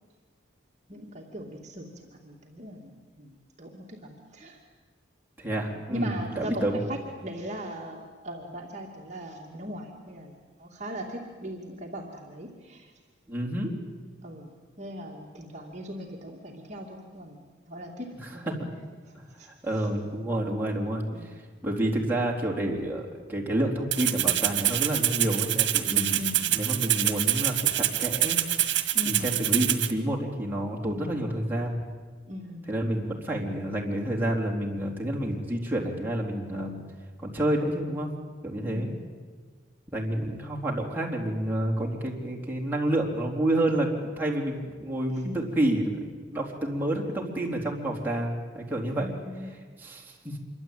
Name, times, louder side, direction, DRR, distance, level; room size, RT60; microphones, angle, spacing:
voice 1, 0.9-4.6 5.9-12.9 14.2-14.5 14.8-18.5 19.1-19.5 19.7-19.9 21.1-21.3 25.9-26.5 28.9-29.3 30.8-31.0 32.3-32.7 38.6-39.0 45.1-45.5 48.9-49.6, equal, 40° right, 0 dB, 2.6 m, -39 dB
voice 2, 5.4-6.8 13.3-13.7 18.6-18.7 19.5-21.3 21.6-26.2 26.5-28.4 29.0-31.8 32.7-36.8 37.2-38.1 38.4-38.9 39.9-46.0 46.3-49.1 49.8-50.4, right 1 dB, 10° right, -2 dB, 3.9 m, -29 dB
Rattle (instrument), 23.9-29.9, right 13 dB, 70° right, 1.9 m, -25 dB
27.0 x 24.0 x 9.2 m, 1.5 s
head